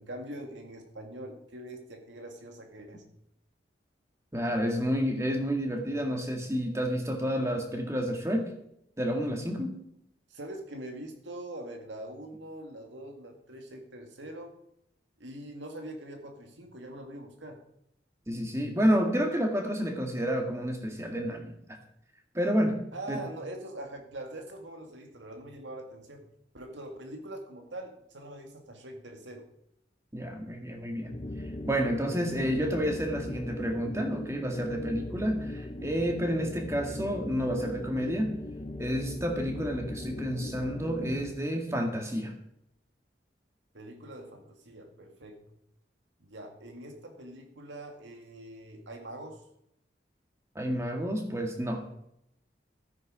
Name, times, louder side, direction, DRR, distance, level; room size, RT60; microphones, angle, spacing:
voice 1, 0.0-3.0 10.3-14.5 15.2-17.6 22.9-26.3 26.5-29.5 43.7-45.4 46.2-49.5, right 1 dB, 85° right, 4 dB, 2.1 m, -43 dB
voice 2, 4.3-8.5 9.0-9.7 18.3-21.5 22.3-22.8 23.1-23.2 30.1-31.2 31.7-38.3 38.8-42.3 50.6-51.8, equal, 15° right, 3 dB, 1.9 m, -30 dB
sound 1, 31.0-41.4, left 1 dB, 30° left, 0.6 m, -39 dB
13.5 x 9.4 x 4.9 m, 0.77 s
head